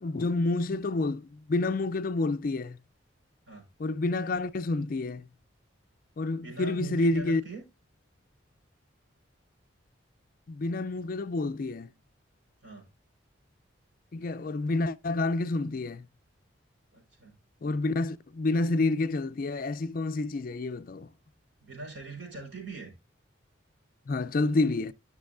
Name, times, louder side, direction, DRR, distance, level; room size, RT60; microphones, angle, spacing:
voice 1, 0.0-2.8 3.8-5.3 6.2-7.4 10.5-11.9 14.1-16.1 17.6-21.1 24.1-24.9, left 2 dB, 45° left, 0.4 m, -29 dB
voice 2, 6.3-7.6 12.6-12.9 16.9-17.3 21.6-22.9, right 3 dB, 60° right, 4.6 m, -42 dB
12.5 x 6.0 x 2.5 m
head